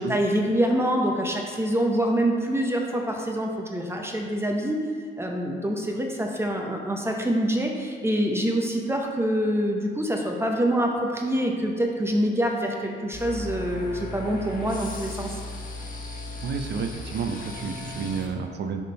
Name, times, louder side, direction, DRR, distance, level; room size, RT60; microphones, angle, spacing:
voice 1, 0.0-4.8 5.2-15.3, equal, 10° right, 1 dB, 0.7 m, -25 dB
sound 1, 13.1-18.3, left 2 dB, 45° left, 1.3 m, -36 dB
voice 2, 16.4-18.8, right 5 dB, 60° right, 6 dB, 0.5 m, -30 dB
6.6 x 3.7 x 5.4 m, 2.1 s
cardioid pair, 90°, 20 cm